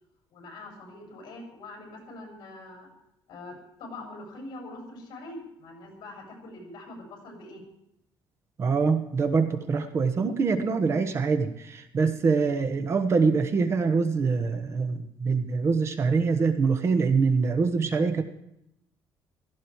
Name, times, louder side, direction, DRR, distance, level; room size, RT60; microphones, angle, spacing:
voice 1, 0.3-2.9 3.3-7.6, left 2 dB, 60° left, 1 dB, 6.7 m, -43 dB
voice 2, 8.6-18.2, right 4 dB, 35° right, 9 dB, 1.2 m, -24 dB
16.5 x 15.0 x 4.7 m, 0.82 s
cardioid pair, 165°, 8 cm